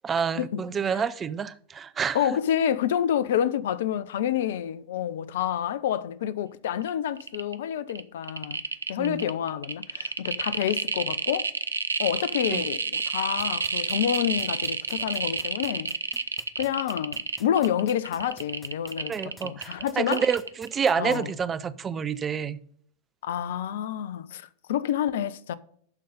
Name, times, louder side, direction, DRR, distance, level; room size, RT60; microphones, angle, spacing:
voice 1, 0.0-2.2 9.0-9.2 12.5-12.6 19.1-22.6, right 6 dB, 20° right, 0.5 m, -28 dB
voice 2, 2.1-8.6 8.9-11.5 12.0-15.9 16.6-20.2 21.0-21.3 23.2-25.6, left 10 dB, 55° left, 0.5 m, -28 dB
sound 1, 6.8-6.9 7.2-7.5 7.9-20.9 21.2-21.3, right 4 dB, 75° right, 0.5 m, -30 dB
sound 2, 13.4-21.2, equal, ahead, 0.9 m, -49 dB
Drip, 15.0-15.2 16.6-16.8 18.2-18.4 19.8-20.0 21.4-21.6, right 1 dB, 90° left, 2.5 m, -50 dB
11.5 x 3.9 x 5.3 m
figure-of-eight pair, 90°, 0 cm